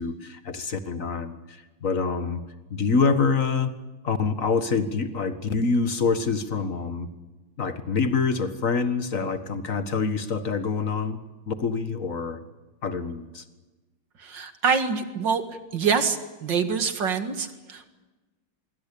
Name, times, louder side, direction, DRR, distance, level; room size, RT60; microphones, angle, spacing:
voice 1, 0.0-2.4 2.7-3.8 4.0-7.1 7.6-11.2 11.5-12.4 12.8-13.4, left 4 dB, 45° left, 10 dB, 1.9 m, -26 dB
voice 2, 14.2-15.4 15.7-17.9, right 6 dB, 65° right, 9 dB, 2.6 m, -25 dB
25.5 x 23.0 x 8.6 m, 1.2 s
omnidirectional pair, 2.2 m